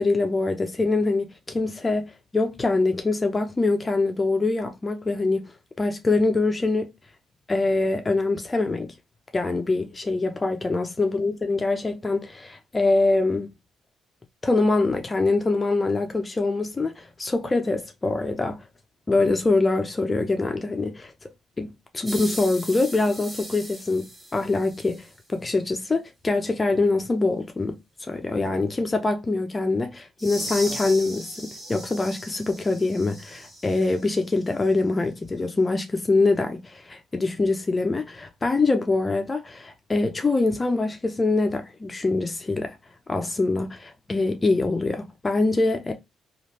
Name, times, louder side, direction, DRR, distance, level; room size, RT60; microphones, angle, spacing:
voice 1, 0.0-5.5 5.8-6.9 7.5-8.9 9.3-13.5 14.4-18.6 19.1-21.1 21.6-27.8 28.1-42.8 43.1-45.9, left 3 dB, 25° left, 0.5 m, -24 dB
sound 1, 22.1-25.1 30.2-34.2, right 1 dB, 15° right, 1.4 m, -38 dB
3.2 x 2.4 x 2.7 m
cardioid pair, 90°, 0 cm